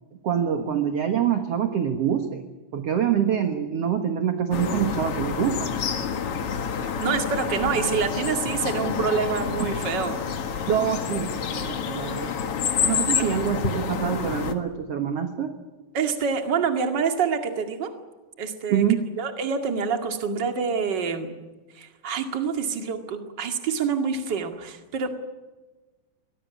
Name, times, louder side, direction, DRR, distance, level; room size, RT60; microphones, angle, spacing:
voice 1, 0.2-2.4 2.7-5.7 10.7-12.5 12.8-15.5 18.7-19.0, right 9 dB, 50° right, 6 dB, 2.1 m, -25 dB
sound 1, 4.5-14.5, left 7 dB, 50° left, 2.0 m, -28 dB
voice 2, 7.0-10.2 13.1-13.3 15.9-17.9 18.4-18.8 19.2-21.3 21.8-25.1, right 6 dB, 35° right, 5 dB, 2.3 m, -26 dB
23.5 x 19.0 x 9.6 m, 1.2 s
omnidirectional pair, 4.1 m